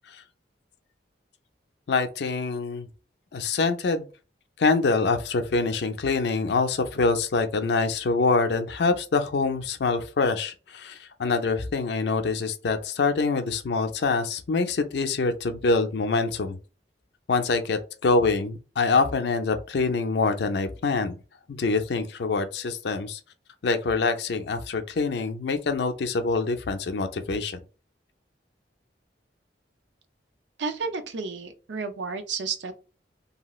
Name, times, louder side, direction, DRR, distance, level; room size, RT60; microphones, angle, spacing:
voice 1, 1.9-2.9 3.3-4.1 4.6-16.6 17.3-21.2 21.5-23.2 23.6-27.6, left 4 dB, 65° left, 0.4 m, -25 dB
voice 2, 30.6-32.7, right 4 dB, 80° right, 0.5 m, -32 dB
2.7 x 2.3 x 3.0 m
head